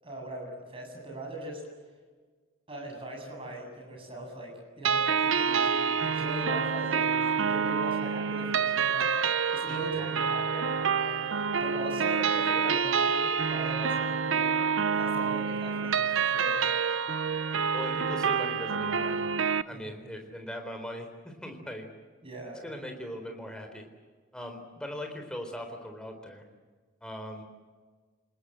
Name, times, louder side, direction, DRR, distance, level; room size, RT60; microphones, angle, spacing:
voice 1, 0.0-1.6 2.7-4.5 4.8-14.6 14.9-16.6 19.7-20.0 22.2-22.6, right 1 dB, 25° right, 1 dB, 7.7 m, -40 dB
sound 1, 4.8-19.6, right 6 dB, 70° right, 0.8 m, -27 dB
voice 2, 9.7-10.1 17.7-21.9 22.6-23.8 24.3-26.4 27.0-27.4, equal, 5° left, 4 dB, 3.9 m, -40 dB
29.0 x 20.0 x 8.9 m, 1.5 s
head